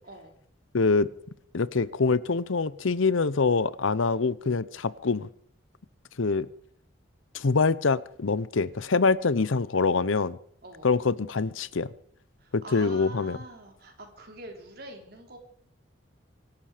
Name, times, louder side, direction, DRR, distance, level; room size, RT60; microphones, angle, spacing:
voice 1, 0.0-0.4 10.6-10.9 12.4-15.4, right 2 dB, 50° right, 3 dB, 3.7 m, -45 dB
voice 2, 0.7-1.1 1.5-5.3 6.2-6.5 7.3-10.4 10.8-11.9 12.5-13.4, left 4 dB, 85° left, 18 dB, 0.7 m, -25 dB
25.0 x 11.5 x 5.1 m, 0.64 s
head